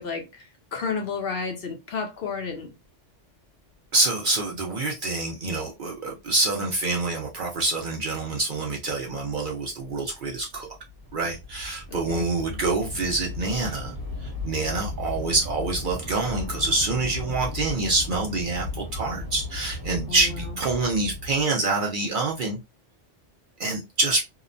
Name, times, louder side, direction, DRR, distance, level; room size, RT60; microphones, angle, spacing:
voice 1, 0.0-2.7 11.9-12.3 20.1-20.4, left 5 dB, 60° left, 0.7 m, -32 dB
voice 2, 3.9-10.7 11.1-13.9 14.2-22.6 23.6-24.2, right 3 dB, 55° right, 0.6 m, -26 dB
Train / Subway metro underground, 8.9-21.4, left 3 dB, 20° right, 0.9 m, -36 dB
2.8 x 2.1 x 2.5 m
omnidirectional pair, 1.2 m